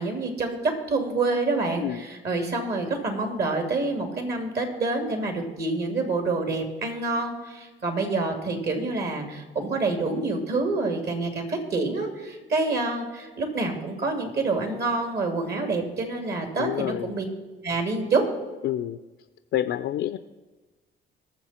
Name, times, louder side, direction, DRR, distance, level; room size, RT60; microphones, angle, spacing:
voice 1, 0.0-17.2 17.6-18.2, right 3 dB, 55° right, 4 dB, 2.8 m, -27 dB
voice 2, 16.6-17.1 18.6-19.0 19.5-20.2, left 12 dB, 75° left, 10 dB, 0.5 m, -28 dB
19.0 x 7.1 x 4.3 m, 1.2 s
cardioid pair, 90°, 20 cm